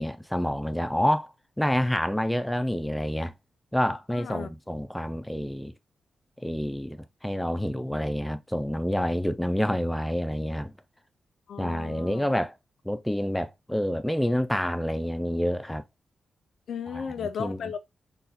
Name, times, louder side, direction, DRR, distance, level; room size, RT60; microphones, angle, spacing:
voice 1, 0.0-1.3 1.6-3.3 3.7-5.7 6.4-10.7 11.6-12.5 12.8-15.8 16.9-17.0 17.4-17.6, equal, 5° left, 0.4 m, -28 dB
voice 2, 3.9-4.5 11.5-12.3 16.7-17.8, left 7 dB, 80° left, 0.6 m, -36 dB
4.0 x 2.3 x 4.1 m
wide cardioid pair, 170°, 0 cm